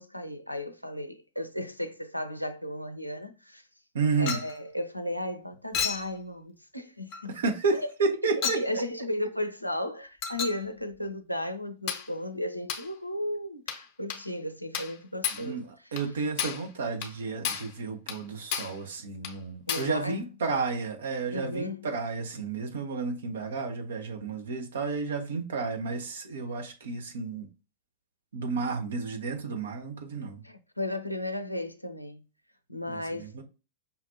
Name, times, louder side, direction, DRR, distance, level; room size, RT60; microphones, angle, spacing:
voice 1, 0.0-3.6 4.2-7.4 7.8-7.9 8.2-15.7 19.7-20.3 21.3-21.9 30.4-32.2 32.7-33.3, left 1 dB, 90° left, 0.4 m, -35 dB
voice 2, 3.9-4.4 7.3-8.6 15.3-27.5 28.3-30.4 32.9-33.4, right 4 dB, 65° right, 0.9 m, -31 dB
Chink clink, 4.3-4.6 5.7-6.1 7.1-7.3 8.4-8.7 10.2-10.6 11.9-12.1 12.7-12.9 13.7-13.9 14.1-14.3 14.7-15.0 15.2-15.5 16.0-16.1 16.4-16.7 17.0-17.2 17.4-17.7 18.1-18.2 18.5-18.8 19.2-19.4 19.7-20.0, left 7 dB, 45° left, 0.8 m, -32 dB
5.5 x 2.5 x 2.7 m
figure-of-eight pair, 90°, 0 cm